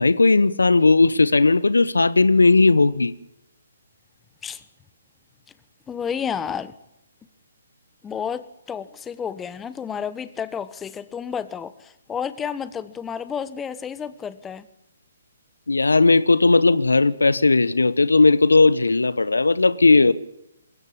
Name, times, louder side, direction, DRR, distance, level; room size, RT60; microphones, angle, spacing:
voice 1, 0.0-3.1 15.7-20.1, left 3 dB, 80° left, 1.0 m, -17 dB
voice 2, 5.9-6.7 8.0-14.7, left 7 dB, 10° left, 1.0 m, -31 dB
21.5 x 17.0 x 8.7 m
figure-of-eight pair, 135°, 0 cm